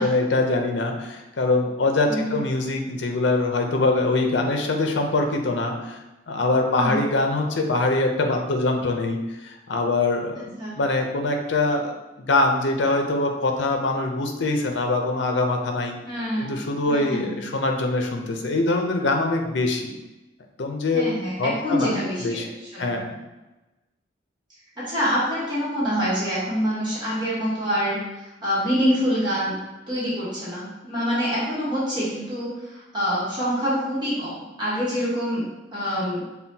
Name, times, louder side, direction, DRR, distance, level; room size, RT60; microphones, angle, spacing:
voice 1, 0.0-6.0 6.3-11.9 12.2-16.0 16.4-19.9 20.6-21.1 21.4-22.5 22.8-23.0, left 2 dB, 70° left, 3 dB, 0.6 m, -23 dB
voice 2, 16.0-16.5 16.9-17.4 20.9-22.5 22.7-23.0 24.8-28.0 28.4-29.6 29.9-35.4 35.7-36.2, equal, 25° right, -9 dB, 1.2 m, -26 dB
5.5 x 2.2 x 2.7 m, 1.1 s
head